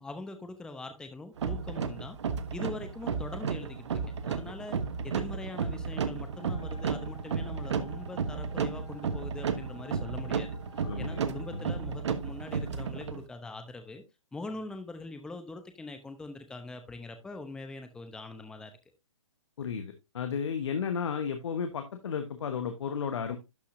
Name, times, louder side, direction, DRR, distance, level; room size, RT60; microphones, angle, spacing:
voice 1, 0.0-2.2 2.5-10.6 11.0-14.0 14.3-18.7, left 2 dB, 5° left, 0.8 m, -42 dB
sound 1, 1.4-13.2, right 6 dB, 55° right, 1.1 m, -33 dB
Wind instrument woodwind instrument, 6.3-11.9, left 5 dB, 35° left, 1.9 m, -55 dB
voice 2, 10.8-11.2 11.5-11.6 19.6-23.4, left 6 dB, 60° left, 1.3 m, -33 dB
12.0 x 5.7 x 2.7 m
hypercardioid pair, 140°, 17 cm